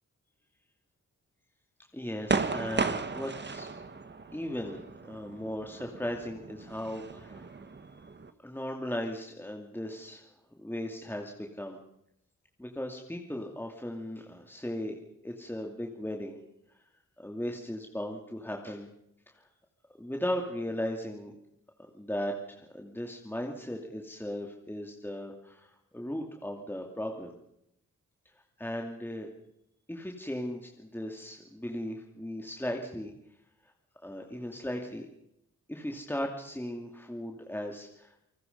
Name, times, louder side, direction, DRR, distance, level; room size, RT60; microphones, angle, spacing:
voice 1, 1.9-3.7 4.3-7.6 8.4-10.3 10.6-11.8 12.6-15.0 15.2-16.4 17.2-18.9 19.3-19.5 20.0-21.3 21.9-27.4 28.6-29.3 29.9-33.1 33.6-33.7 34.0-35.1 35.7-38.2, left 1 dB, 5° left, 1 dB, 2.7 m, -37 dB
sound 1, 2.2-8.3, right 4 dB, 35° right, 1.6 m, -35 dB
29.5 x 19.5 x 5.5 m, 0.77 s
cardioid pair, 85°, 31 cm